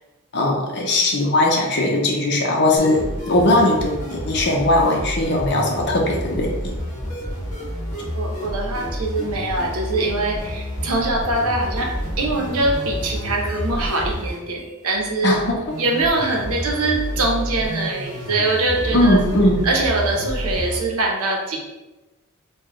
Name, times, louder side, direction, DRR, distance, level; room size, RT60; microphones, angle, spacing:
voice 1, 0.3-6.7 15.2-15.8 18.9-19.6, left 1 dB, 55° left, 0 dB, 0.7 m, -19 dB
sound 1, 2.8-20.8, equal, 35° left, 1.2 m, -29 dB
voice 2, 8.1-11.9 12.2-15.4 15.8-19.2 19.6-21.6, right 2 dB, 80° right, -1 dB, 0.8 m, -23 dB
4.7 x 2.3 x 3.0 m, 1.1 s
head